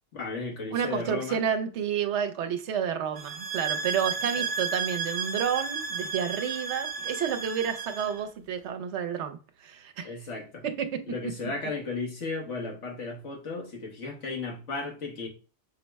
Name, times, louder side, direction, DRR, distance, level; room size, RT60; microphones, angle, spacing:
voice 1, 0.1-1.4 4.3-4.4 10.0-10.6 11.0-15.3, left 3 dB, 80° left, 1.4 m, -35 dB
voice 2, 0.7-9.4 9.6-10.1 10.8-11.0, right 8 dB, 75° right, 0.9 m, -30 dB
sound 1, 3.2-8.2, right 5 dB, 55° right, 0.4 m, -33 dB
5.4 x 2.0 x 4.5 m
omnidirectional pair, 1.2 m